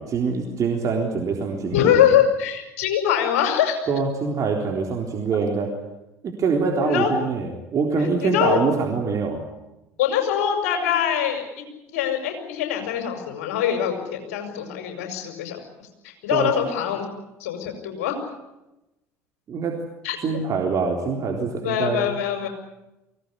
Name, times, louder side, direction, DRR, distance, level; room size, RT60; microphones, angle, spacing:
voice 1, 0.0-1.9 3.9-5.7 6.2-9.4 16.3-16.5 19.5-19.8 20.2-22.1, right 4 dB, 45° right, 1 dB, 3.8 m, -24 dB
voice 2, 1.7-3.8 6.8-7.1 8.2-8.6 10.0-11.6 11.9-15.6 16.0-17.1 17.4-18.2 20.0-20.2 21.6-22.5, left 9 dB, 70° left, 5 dB, 5.7 m, -23 dB
23.5 x 17.5 x 10.0 m, 0.96 s
hypercardioid pair, 65°, 8 cm